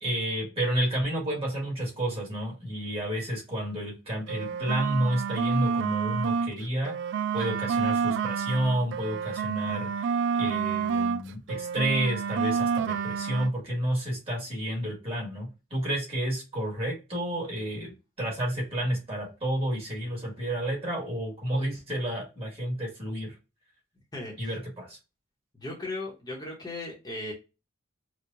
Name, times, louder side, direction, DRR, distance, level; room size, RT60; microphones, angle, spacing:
voice 1, 0.0-6.9 7.3-23.3 24.4-25.0, right 1 dB, 30° right, -3 dB, 1.8 m, -30 dB
sound 1, 4.2-6.5 6.8-11.2 11.5-13.5, right 6 dB, 65° right, 0.3 m, -29 dB
voice 2, 24.1-24.6 25.5-27.3, left 2 dB, 20° left, -3 dB, 1.0 m, -37 dB
4.5 x 2.3 x 2.6 m, 0.28 s
head